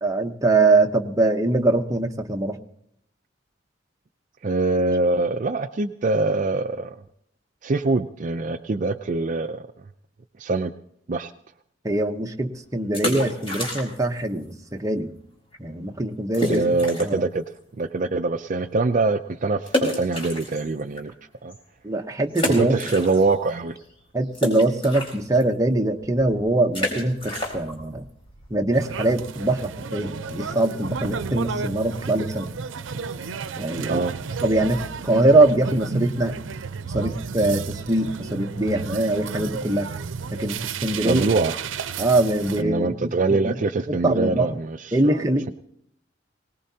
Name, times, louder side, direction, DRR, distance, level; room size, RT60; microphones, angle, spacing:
voice 1, 0.0-2.6 11.8-15.1 15.6-16.6 17.0-17.2 21.8-22.8 24.1-28.0 28.5-32.5 33.6-34.0 34.4-36.4 36.8-39.9 40.3-41.3 42.0-43.5 44.0-44.5 44.9-45.5, right 2 dB, 15° right, 4 dB, 0.8 m, -22 dB
voice 2, 4.4-7.0 7.6-9.7 10.4-10.7 11.1-11.3 16.5-17.4 17.8-21.1 21.4-21.5 22.5-23.8 33.9-34.2 41.0-41.5 42.6-45.5, right 3 dB, 40° right, 8 dB, 0.4 m, -24 dB
sound 1, 12.8-14.2 14.4-14.5 15.1-15.3 15.5-15.6 16.3-17.3 17.7-17.8 19.7-21.0 21.5-21.6 22.3-23.5 23.8-29.3, equal, 30° left, 4.3 m, -29 dB
sound 2, 28.7-42.6, right 5 dB, 90° right, 0.6 m, -32 dB
21.0 x 18.5 x 2.8 m, 0.73 s
head